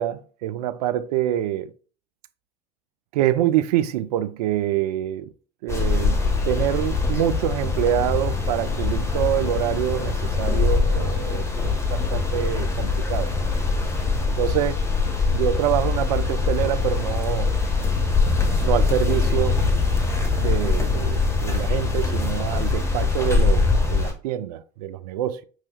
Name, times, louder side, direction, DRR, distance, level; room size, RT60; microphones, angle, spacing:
voice 1, 0.0-1.7 3.1-5.3 5.6-13.3 14.3-14.8 15.3-17.5 18.6-19.6 20.4-25.4, right 12 dB, 75° right, 0.4 m, -26 dB
sound 1, 5.7-24.1, left 4 dB, 15° left, 1.2 m, -23 dB
5.5 x 3.1 x 2.2 m
hypercardioid pair, 70°, 20 cm